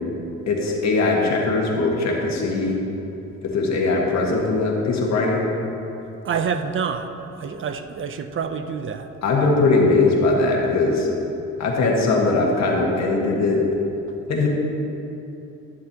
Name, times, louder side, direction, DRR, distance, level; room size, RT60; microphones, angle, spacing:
voice 1, 0.5-2.8 3.4-5.5 9.2-11.1 11.6-13.7 14.3-14.5, left 3 dB, 65° left, -1 dB, 1.7 m, -20 dB
voice 2, 6.2-7.1 7.4-9.1, right 6 dB, 45° right, 8 dB, 0.5 m, -27 dB
12.5 x 7.5 x 2.9 m, 2.9 s
cardioid pair, 90°, 30 cm